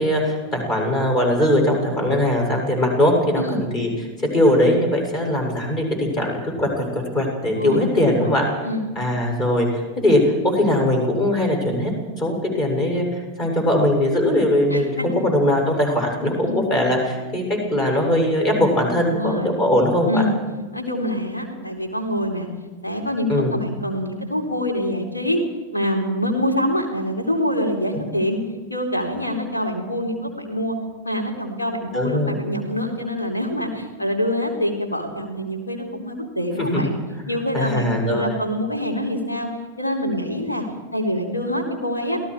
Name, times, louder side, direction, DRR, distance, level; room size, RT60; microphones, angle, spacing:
voice 1, 0.0-3.9 4.3-8.5 9.0-11.9 12.2-20.2 23.3-23.5 27.9-28.0 31.9-32.4 36.6-36.9 37.5-38.4, left 1 dB, 35° left, 1 dB, 7.9 m, -20 dB
voice 2, 7.6-8.3 8.6-8.8 14.7-15.1 16.4-16.7 19.1-19.6 20.0-20.3 20.7-22.5 22.8-25.4 25.7-28.4 28.7-30.8 31.0-37.0 37.3-39.5 39.8-40.6 40.9-42.2, equal, 80° left, 2 dB, 3.9 m, -25 dB
29.0 x 17.5 x 5.1 m, 1.3 s
figure-of-eight pair, 90°, 0 cm